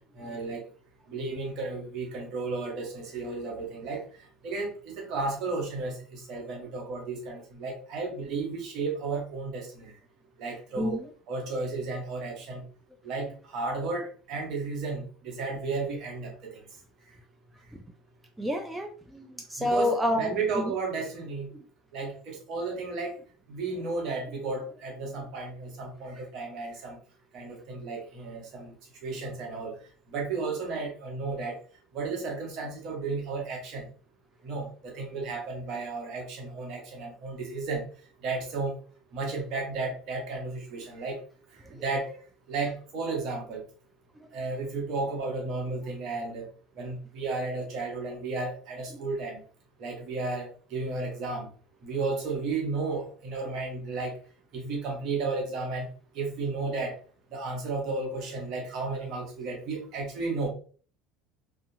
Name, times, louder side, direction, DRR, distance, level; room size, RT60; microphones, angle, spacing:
voice 1, 0.1-0.7 1.1-4.0 4.4-9.9 10.4-11.0 11.3-12.6 13.0-16.6 19.6-21.5 21.9-23.2 23.5-27.0 27.3-28.7 29.0-29.8 30.1-31.6 31.9-33.9 34.4-37.8 38.2-38.8 39.1-41.2 41.7-42.1 42.5-43.6 44.3-46.5 46.8-49.4 49.8-51.5 51.8-54.1 54.5-55.9 56.1-57.0 57.3-60.5, right 3 dB, 60° right, 0 dB, 1.0 m, -33 dB
voice 2, 10.8-11.1 17.7-17.8 18.4-20.7 21.5-21.6 41.8-41.9 56.6-56.7, left 1 dB, 10° right, 2 dB, 0.5 m, -29 dB
2.6 x 2.3 x 2.6 m, 0.41 s
hypercardioid pair, 70°, 0 cm